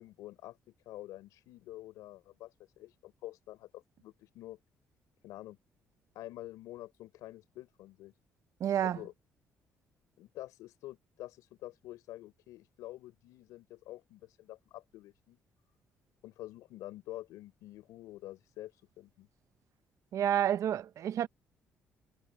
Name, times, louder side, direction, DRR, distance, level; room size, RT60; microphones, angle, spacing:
voice 1, 0.0-4.6 5.2-5.6 6.1-8.1 8.8-9.1 10.2-15.4 16.2-19.3, left 16 dB, 85° left, 5.5 m, -48 dB
voice 2, 8.6-9.0 20.1-21.3, right 10 dB, 65° right, 0.9 m, -29 dB
supercardioid pair, 65°, 6 cm